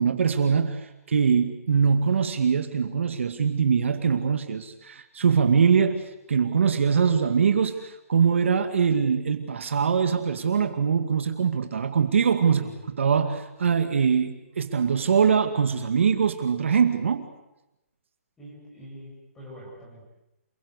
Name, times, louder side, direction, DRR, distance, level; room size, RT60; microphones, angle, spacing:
voice 1, 0.0-12.6 13.0-17.3, right 6 dB, 55° right, 8 dB, 2.1 m, -23 dB
voice 2, 12.5-12.9 18.4-20.1, equal, 5° left, -4 dB, 7.9 m, -44 dB
28.5 x 21.5 x 8.2 m, 0.93 s
hypercardioid pair, 175°, 8 cm